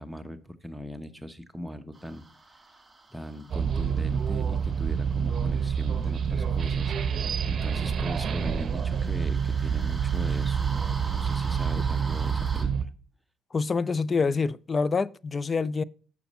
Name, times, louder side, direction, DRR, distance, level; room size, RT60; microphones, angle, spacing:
voice 1, 0.0-2.7 3.1-10.6 11.1-12.9, equal, 5° right, 0.9 m, -40 dB
sound 1, 1.9-12.6, right 3 dB, 20° right, 2.1 m, -45 dB
sound 2, 3.5-12.8, right 7 dB, 50° right, 0.7 m, -27 dB
voice 2, 13.5-15.8, left 4 dB, 35° left, 0.3 m, -26 dB
7.0 x 6.1 x 4.2 m
supercardioid pair, 75°, 0 cm